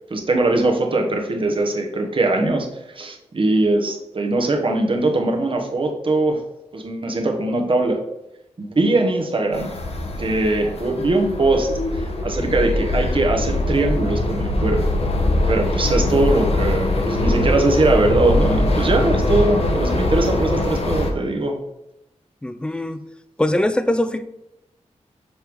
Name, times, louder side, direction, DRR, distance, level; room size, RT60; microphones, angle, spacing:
voice 1, 0.1-6.4 6.7-8.0 8.6-9.7 10.2-15.0 15.5-21.6, right 2 dB, 45° right, 1.1 m, -21 dB
sound 1, 9.5-21.1, left 1 dB, 55° left, 0.9 m, -22 dB
voice 2, 22.4-23.0 23.4-24.2, left 1 dB, 10° left, 0.4 m, -21 dB
6.7 x 4.6 x 3.5 m
wide cardioid pair, 85°, 12 cm